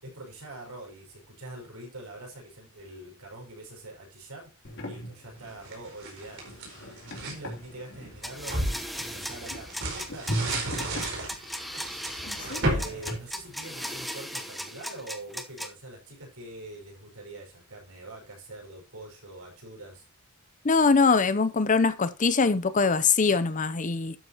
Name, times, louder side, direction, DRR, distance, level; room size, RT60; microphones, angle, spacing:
voice 1, 0.0-4.5 4.8-11.2 12.1-20.0, right 1 dB, 70° right, 5.8 m, -44 dB
sound 1, 4.6-13.2, equal, 55° left, 3.2 m, -39 dB
sound 2, 5.4-7.4 7.9-14.0, right 1 dB, 55° right, 4.6 m, -34 dB
sound 3, 8.2-15.7, equal, ahead, 1.0 m, -37 dB
voice 2, 20.6-24.1, left 4 dB, 35° left, 0.7 m, -22 dB
12.0 x 8.2 x 3.0 m
head